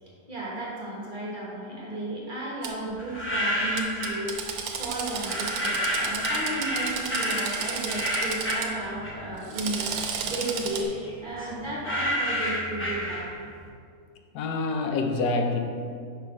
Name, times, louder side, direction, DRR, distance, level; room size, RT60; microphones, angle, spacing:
voice 1, 0.0-4.4 4.8-10.9 11.2-13.3, right 1 dB, 35° right, -5 dB, 1.0 m, -34 dB
Drill, 2.6-2.7 3.8-8.7 9.4-10.8, right 6 dB, 75° right, 1.1 m, -33 dB
sound 1, 3.0-4.2 5.2-9.5 9.8-13.6, equal, 15° left, 0.5 m, -30 dB
voice 2, 14.3-15.6, left 3 dB, 90° left, 4 dB, 1.2 m, -26 dB
5.6 x 4.2 x 4.8 m, 2.3 s
omnidirectional pair, 1.7 m